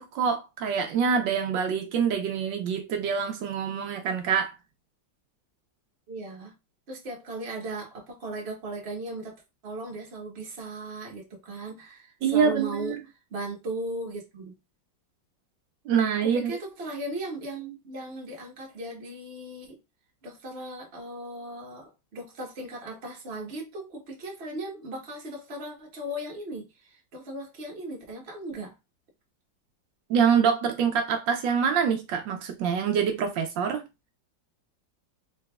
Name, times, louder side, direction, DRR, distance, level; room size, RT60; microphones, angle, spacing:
voice 1, 0.0-4.5 12.2-13.0 15.9-16.6 30.1-33.8, right 7 dB, 80° right, 1.3 m, -25 dB
voice 2, 6.1-6.5 6.9-13.0 13.3-14.6 16.2-19.8 20.2-28.7, right 1 dB, 40° right, 1.2 m, -37 dB
3.9 x 3.3 x 2.3 m
omnidirectional pair, 2.0 m